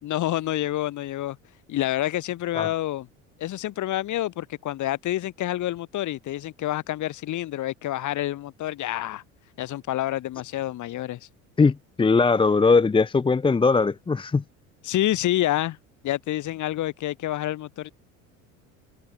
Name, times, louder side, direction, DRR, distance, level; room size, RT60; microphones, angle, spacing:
voice 1, 0.0-1.4 1.7-3.1 3.4-9.2 9.6-11.2 14.8-15.8 16.0-17.9, left 14 dB, 45° left, 5.7 m, -28 dB
voice 2, 11.6-14.4, left 4 dB, 10° left, 1.0 m, -20 dB
figure-of-eight pair, 65°, 42 cm